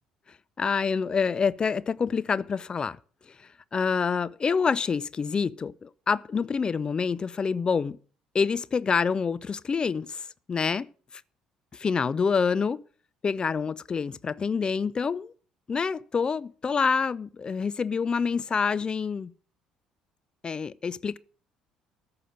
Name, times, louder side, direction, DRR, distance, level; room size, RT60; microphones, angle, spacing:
voice 1, 0.6-3.0 3.4-8.0 8.3-10.9 11.7-12.8 13.2-15.3 15.7-19.3 20.4-21.2, left 5 dB, 30° left, 0.5 m, -27 dB
14.0 x 5.9 x 8.9 m
figure-of-eight pair, 50°, 3 cm